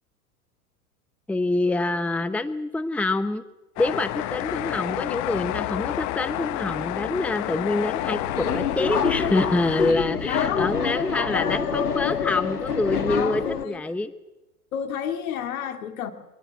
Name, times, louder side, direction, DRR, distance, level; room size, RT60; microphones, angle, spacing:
voice 1, 1.3-3.4 3.8-14.1, left 2 dB, 5° left, 0.9 m, -26 dB
sound 1, 3.8-9.9, left 16 dB, 40° left, 1.0 m, -30 dB
Subway metro underground, 8.0-13.6, left 7 dB, 85° left, 1.4 m, -27 dB
voice 2, 10.2-10.8 11.3-12.1 13.1-13.8 14.7-16.1, left 9 dB, 65° left, 2.6 m, -30 dB
23.0 x 19.0 x 7.5 m
figure-of-eight pair, 90°, 44 cm